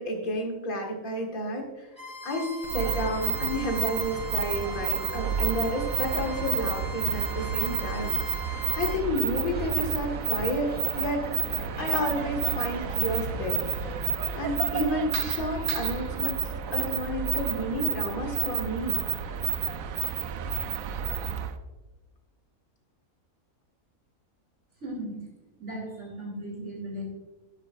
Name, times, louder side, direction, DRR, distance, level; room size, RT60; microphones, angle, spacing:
voice 1, 0.0-1.9 2.2-11.3 11.8-13.9 14.3-16.4 16.7-19.0, equal, 75° left, 1 dB, 2.3 m, -31 dB
Bowed string instrument, 1.9-9.0, right 2 dB, 20° left, 1.9 m, -40 dB
sound 1, 2.6-21.6, right 8 dB, 70° right, 1.1 m, -30 dB
sound 2, 9.4-14.6, right 1 dB, 5° right, 1.2 m, -45 dB
voice 2, 24.8-25.2 25.6-27.0, right 1 dB, 55° right, -2 dB, 3.2 m, -36 dB
11.5 x 10.0 x 2.5 m, 1.2 s
omnidirectional pair, 1.5 m